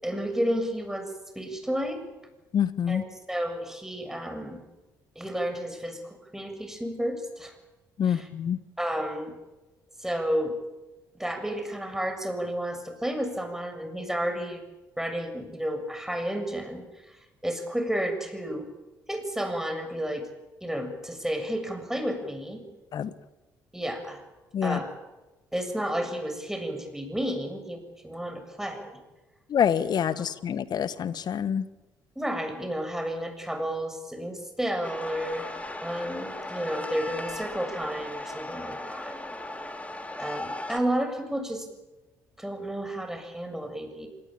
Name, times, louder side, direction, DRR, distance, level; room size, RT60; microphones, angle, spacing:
voice 1, 0.0-2.0 2.9-4.6 5.2-7.5 8.1-8.3 8.8-9.4 10.0-10.6 11.1-14.6 15.0-17.2 17.4-18.7 19.1-20.3 20.6-22.6 23.7-24.2 24.6-24.9 25.5-28.9 32.2-35.5 35.8-39.2 40.2-41.7 42.4-44.1, equal, 5° right, 7 dB, 7.1 m, -31 dB
voice 2, 2.5-3.0 8.0-8.6 22.9-23.1 24.5-24.8 29.5-31.7, left 8 dB, 55° left, 15 dB, 1.4 m, -26 dB
sound 1, 34.8-40.8, left 1 dB, 15° left, 3.7 m, -37 dB
26.0 x 20.0 x 8.9 m, 1.1 s
hypercardioid pair, 55°, 8 cm